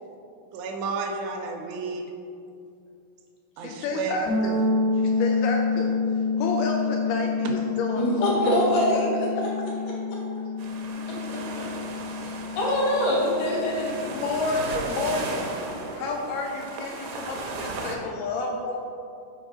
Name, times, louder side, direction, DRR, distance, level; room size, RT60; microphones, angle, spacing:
voice 1, 0.5-2.0 3.6-4.2, right 4 dB, 90° right, 3 dB, 2.6 m, -31 dB
voice 2, 3.6-4.6 4.9-5.9 6.4-8.6 9.4-9.5 11.0-11.3 14.0-15.6 15.9-18.8, left 3 dB, 80° left, 1 dB, 2.0 m, -30 dB
sound 1, 4.2-14.0, left 4 dB, 45° left, 1.3 m, -28 dB
voice 3, 8.0-9.1 11.1-11.4 12.6-13.9, left 1 dB, 65° left, -5 dB, 2.7 m, -23 dB
sound 2, 10.6-17.9, right 3 dB, 75° right, 2.0 m, -36 dB
5.9 x 4.4 x 5.1 m, 2.5 s
omnidirectional pair, 4.1 m